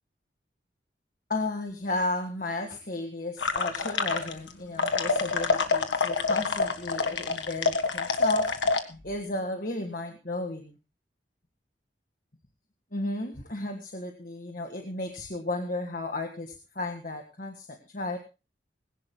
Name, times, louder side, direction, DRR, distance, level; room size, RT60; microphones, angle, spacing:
voice 1, 1.3-10.8 12.9-18.2, left 2 dB, 45° left, 4 dB, 1.7 m, -34 dB
sound 1, 3.4-4.5 4.8-8.8, left 4 dB, 85° left, 1.7 m, -26 dB
20.5 x 17.5 x 2.2 m, 0.30 s
head